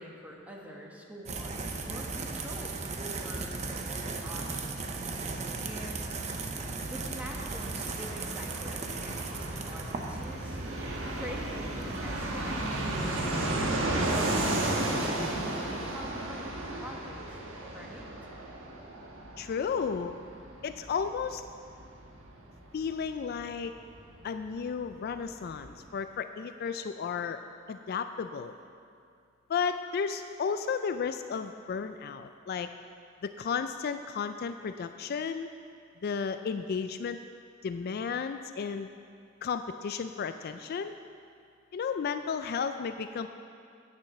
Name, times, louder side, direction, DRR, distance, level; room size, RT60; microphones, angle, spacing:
voice 1, 0.0-4.8 5.6-6.2 6.9-10.6 11.1-13.6 13.9-17.4 17.7-18.1, equal, 10° right, -2 dB, 1.4 m, -45 dB
sound 1, 1.3-13.6, right 3 dB, 35° right, 0.7 m, -37 dB
Fixed-wing aircraft airplane, 6.2-24.6 24.9-25.0 25.2-25.9, right 1 dB, 75° right, 1.4 m, -34 dB
voice 2, 19.4-20.1 20.6-21.4 22.7-23.7 24.2-27.4 27.7-28.5 29.5-32.7 33.2-35.5 36.0-37.2 37.6-38.9 39.4-41.0 41.7-43.3, left 6 dB, 50° left, 9 dB, 0.3 m, -33 dB
9.3 x 7.3 x 6.5 m, 2.4 s
head